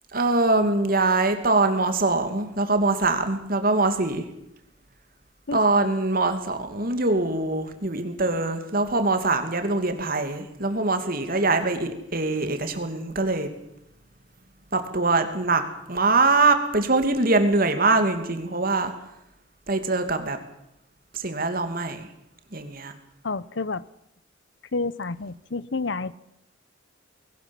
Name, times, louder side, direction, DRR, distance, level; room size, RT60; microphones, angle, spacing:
voice 1, 0.1-4.2 5.5-13.5 14.7-15.6 15.9-18.9 19.7-20.4 21.1-22.1 22.5-22.9, right 3 dB, 45° right, 7 dB, 2.6 m, -23 dB
voice 2, 23.2-23.8 24.7-26.2, left 3 dB, 65° left, 18 dB, 0.8 m, -29 dB
21.0 x 18.5 x 7.2 m, 0.82 s
head